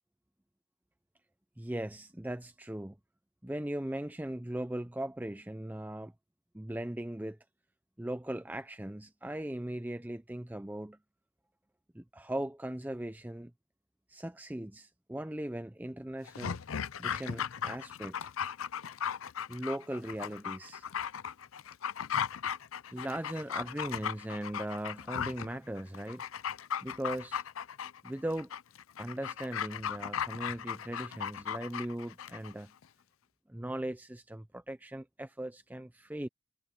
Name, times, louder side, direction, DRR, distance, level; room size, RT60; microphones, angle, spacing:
voice 1, 1.6-3.0 3.4-6.1 6.5-7.4 8.0-11.0 11.9-13.5 14.1-16.6 17.0-18.3 19.5-20.8 22.9-26.3 26.8-27.4 28.0-28.5 29.0-32.7 33.5-36.3, right 1 dB, 10° right, 0.5 m, -39 dB
Dog, 16.3-32.5 32.8-32.9, left 8 dB, 85° left, 0.5 m, -37 dB
head